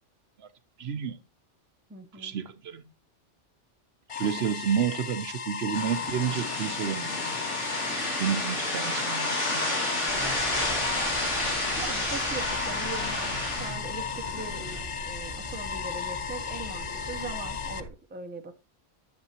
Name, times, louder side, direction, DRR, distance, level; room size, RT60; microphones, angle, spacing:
voice 1, 0.8-1.2 2.2-2.8 4.2-7.2 8.2-9.3, right 8 dB, 65° right, 0.9 m, -30 dB
voice 2, 1.9-2.4 11.8-14.0 14.3-14.6 15.1-18.5, right 4 dB, 10° right, 0.6 m, -40 dB
sound 1, 4.1-17.8, left 7 dB, 50° left, 0.4 m, -36 dB
sound 2, 5.7-14.8, left 1 dB, 80° left, 3.1 m, -31 dB
sound 3, 10.1-17.9, equal, 20° left, 1.6 m, -41 dB
9.7 x 7.8 x 2.8 m
omnidirectional pair, 1.2 m